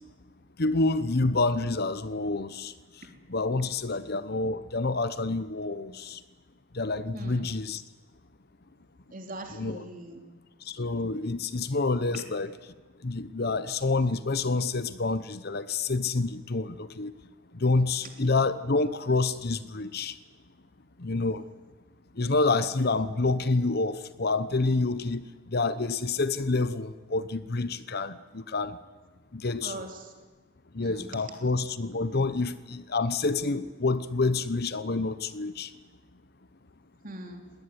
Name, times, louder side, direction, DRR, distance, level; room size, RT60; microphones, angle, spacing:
voice 1, 0.6-2.7 3.3-6.2 6.7-7.8 9.5-9.8 10.7-12.5 13.0-17.1 17.6-20.2 21.0-21.4 22.2-25.2 25.5-28.8 29.3-29.8 30.7-35.7, left 3 dB, 50° left, 14 dB, 0.9 m, -28 dB
voice 2, 7.1-7.4 9.1-10.2 12.1-12.2 29.6-30.1 30.8-31.1 37.0-37.4, right 1 dB, 40° right, 3 dB, 3.4 m, -41 dB
21.0 x 19.0 x 9.8 m, 1.3 s
head